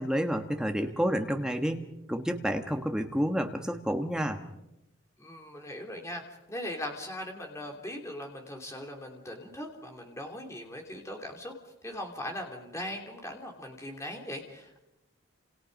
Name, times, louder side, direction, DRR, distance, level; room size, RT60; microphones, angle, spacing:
voice 1, 0.0-4.4, equal, 5° right, 4 dB, 1.4 m, -30 dB
voice 2, 5.2-11.5 11.8-14.8, left 1 dB, 15° left, 2 dB, 3.0 m, -40 dB
29.0 x 27.5 x 5.4 m, 0.93 s
head